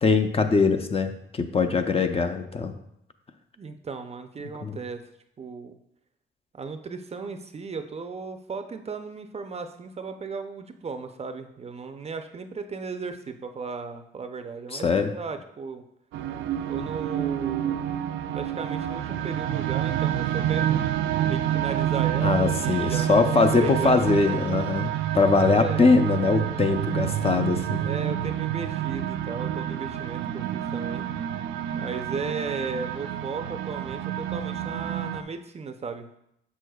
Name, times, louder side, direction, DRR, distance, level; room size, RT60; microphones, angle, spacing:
voice 1, 0.0-2.7 4.6-4.8 14.7-15.1 22.2-27.9, left 4 dB, 30° left, 7 dB, 0.5 m, -22 dB
voice 2, 3.6-5.0 5.4-5.8 6.5-15.8 16.7-17.9 18.3-20.8 21.2-24.4 25.5-26.1 27.8-31.1 31.8-36.1, right 5 dB, 30° right, 7 dB, 0.5 m, -35 dB
sound 1, 16.1-35.2, right 11 dB, 80° right, 0.4 m, -28 dB
7.0 x 6.4 x 2.3 m, 0.77 s
cardioid pair, 90°, 20 cm